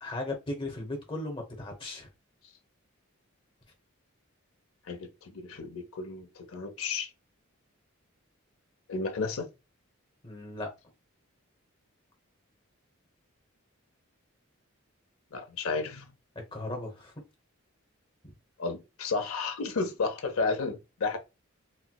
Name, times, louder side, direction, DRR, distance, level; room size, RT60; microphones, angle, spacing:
voice 1, 0.0-2.1 10.2-10.7 16.5-17.1, left 2 dB, 25° left, 0.9 m, -36 dB
voice 2, 4.9-7.1 8.9-9.5 15.3-16.1 18.6-21.2, left 4 dB, 85° left, 0.7 m, -32 dB
4.4 x 2.1 x 2.2 m
head